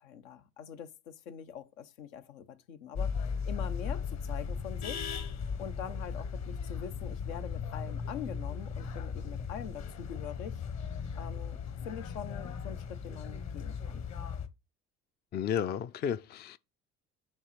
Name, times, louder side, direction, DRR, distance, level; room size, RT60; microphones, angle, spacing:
voice 1, 0.0-3.1 3.5-5.1 5.6-10.6 11.1-11.6 11.8-14.1, left 8 dB, 75° left, 0.9 m, -44 dB
sound 1, 3.0-14.5, left 6 dB, 40° left, 1.1 m, -37 dB
voice 2, 15.3-16.6, left 8 dB, 25° left, 0.4 m, -32 dB
7.2 x 2.9 x 5.7 m
hypercardioid pair, 65°, 40 cm